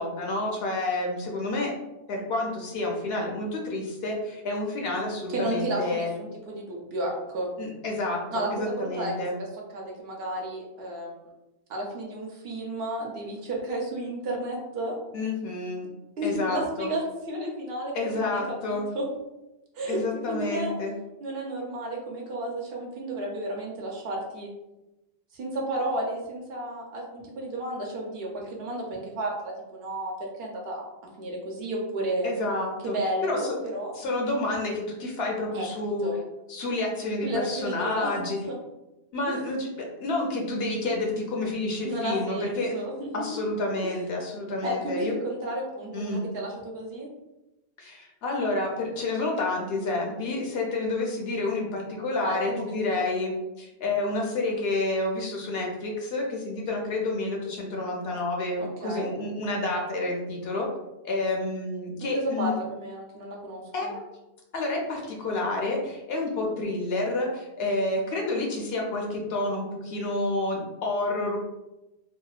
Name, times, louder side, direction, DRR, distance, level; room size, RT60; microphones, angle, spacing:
voice 1, 0.0-1.7 2.1-6.1 7.6-9.3 15.1-15.9 16.2-16.9 17.9-18.8 19.9-20.9 32.2-32.9 33.2-33.5 33.9-36.1 36.5-38.4 39.1-42.8 43.1-45.2 45.9-46.3 47.8-60.7 61.0-62.5 63.7-64.0 64.5-71.4, left 2 dB, 65° left, 0 dB, 0.8 m, -29 dB
voice 2, 5.3-7.5 8.3-9.1 9.7-11.2 11.7-15.0 16.2-19.0 19.8-20.0 20.3-20.7 21.2-24.5 25.3-30.9 31.2-32.3 32.8-33.9 35.5-35.7 36.0-36.2 37.2-38.6 39.3-39.4 41.8-43.1 43.8-43.9 44.6-47.1 52.2-53.1 58.6-59.1 62.0-63.9, right 1 dB, 65° right, -1 dB, 0.8 m, -32 dB
2.8 x 2.1 x 2.3 m, 0.97 s
omnidirectional pair, 1.2 m